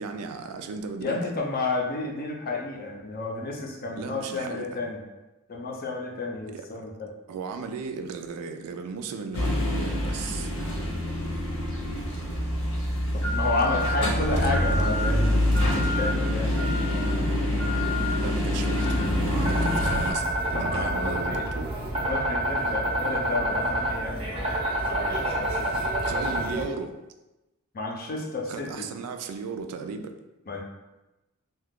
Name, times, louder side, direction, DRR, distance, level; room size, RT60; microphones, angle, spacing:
voice 1, 0.0-1.2 4.0-4.8 6.5-6.7 7.3-10.5 13.6-14.6 16.2-16.3 18.2-21.7 26.0-27.0 28.5-30.1, right 5 dB, 85° right, 7 dB, 0.3 m, -36 dB
voice 2, 1.0-5.0 5.5-7.1 13.1-15.3 15.7-16.7 20.5-21.4 22.0-24.6 24.8-25.7 27.7-28.9 30.5-30.6, left 3 dB, 40° left, 0 dB, 0.5 m, -31 dB
sound 1, 9.3-20.1, left 1 dB, 70° left, 0.8 m, -25 dB
sound 2, 18.8-26.6, right 1 dB, 25° right, 0.5 m, -28 dB
2.7 x 2.3 x 3.5 m, 1.0 s
head